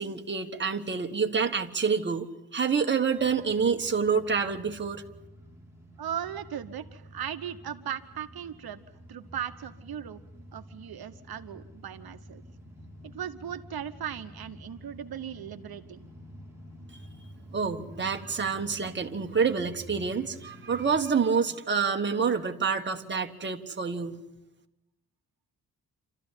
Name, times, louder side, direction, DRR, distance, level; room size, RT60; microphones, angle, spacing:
voice 1, 0.0-5.0 17.5-24.2, right 5 dB, 30° right, 3 dB, 1.5 m, -27 dB
sound 1, 3.2-21.0, equal, 5° right, 3.5 m, -49 dB
voice 2, 6.0-8.8 9.1-10.2 10.5-12.4 13.1-16.1, right 9 dB, 80° right, 8 dB, 1.2 m, -37 dB
28.0 x 13.5 x 9.8 m, 0.92 s
wide cardioid pair, 150°, 37 cm